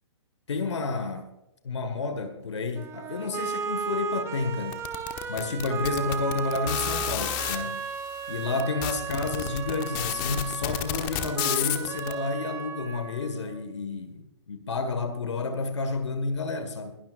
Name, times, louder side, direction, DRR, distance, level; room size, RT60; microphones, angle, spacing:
voice 1, 0.5-1.3 1.6-4.8 5.3-7.9 8.3-17.0, left 4 dB, 75° left, 1.7 m, -30 dB
sound 1, 2.7-13.7, right 6 dB, 20° right, 1.2 m, -35 dB
sound 2, 4.7-7.6 8.3-8.4 8.6-12.1, left 13 dB, 30° left, 1.2 m, -30 dB
21.0 x 12.0 x 2.5 m
figure-of-eight pair, 125°, 15 cm